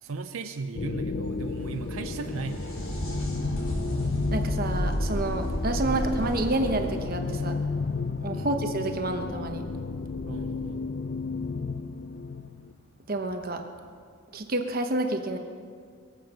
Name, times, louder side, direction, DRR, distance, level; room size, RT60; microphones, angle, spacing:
voice 1, 0.0-2.6 5.8-6.0 8.3-8.5 10.3-10.9, right 4 dB, 80° right, 6 dB, 0.6 m, -36 dB
sound 1, 0.7-12.7, left 4 dB, 50° left, 0.5 m, -33 dB
sound 2, 1.2-8.8 12.2-12.3 13.3-13.4, equal, 70° left, 3.7 m, -33 dB
voice 2, 4.3-7.6 8.2-9.6 13.1-13.6 14.3-15.4, right 2 dB, 45° right, 5 dB, 0.9 m, -29 dB
22.5 x 7.9 x 6.6 m, 2.1 s
head